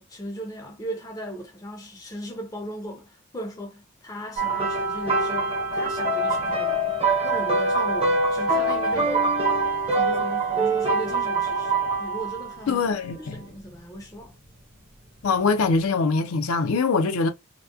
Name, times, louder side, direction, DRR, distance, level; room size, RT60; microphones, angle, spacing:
voice 1, 0.0-9.3 9.9-12.8 13.1-14.4, equal, 15° left, 0.5 m, -37 dB
sound 1, 4.4-12.6 13.5-13.7 15.6-15.7, right 2 dB, 25° right, 0.6 m, -24 dB
voice 2, 12.7-13.4 15.2-17.3, left 4 dB, 75° left, 0.5 m, -23 dB
2.8 x 2.1 x 2.3 m
head